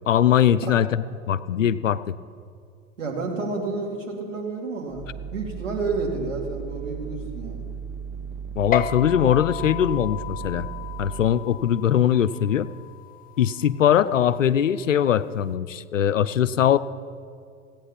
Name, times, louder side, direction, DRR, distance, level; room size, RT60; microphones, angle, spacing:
voice 1, 0.1-0.9 1.3-2.1 8.6-10.7 11.0-12.7 13.4-16.8, left 9 dB, 90° left, 15 dB, 0.5 m, -21 dB
voice 2, 3.0-7.6, right 3 dB, 85° right, 0 dB, 2.7 m, -30 dB
sound 1, 4.9-11.5, right 7 dB, 30° right, 0.7 m, -36 dB
sound 2, 8.7-15.5, left 9 dB, 25° left, 0.5 m, -35 dB
17.0 x 8.8 x 5.8 m, 2.3 s
hypercardioid pair, 85°, 37 cm